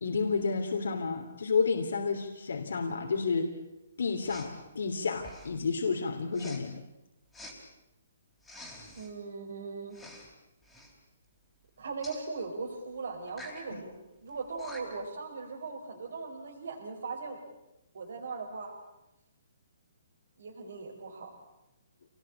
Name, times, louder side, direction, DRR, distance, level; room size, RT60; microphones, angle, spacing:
voice 1, 0.0-3.5 4.0-6.8 13.7-13.8, left 4 dB, 80° left, 4 dB, 2.9 m, -30 dB
Respiratory sounds, 4.3-4.5 5.2-5.6 6.3-6.6 7.3-7.6 8.4-9.1 9.9-10.3 10.6-10.9 12.0-12.2 13.3-13.6 14.3-14.4 14.6-15.1, left 1 dB, 5° left, 3.8 m, -47 dB
voice 2, 9.0-10.0 11.8-13.9 14.2-17.4 17.9-18.7 20.4-21.3, right 4 dB, 65° right, 2 dB, 4.8 m, -39 dB
27.5 x 19.5 x 8.8 m, 0.93 s
hypercardioid pair, 170°, 0 cm